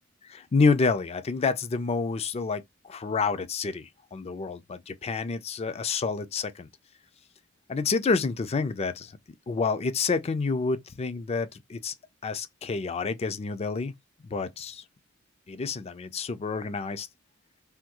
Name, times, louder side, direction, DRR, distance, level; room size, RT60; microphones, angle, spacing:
voice 1, 0.3-6.7 7.7-9.1 9.5-11.9 12.2-13.9 14.2-14.8 15.5-17.1, left 4 dB, 30° left, 0.4 m, -28 dB
3.5 x 2.2 x 2.9 m
head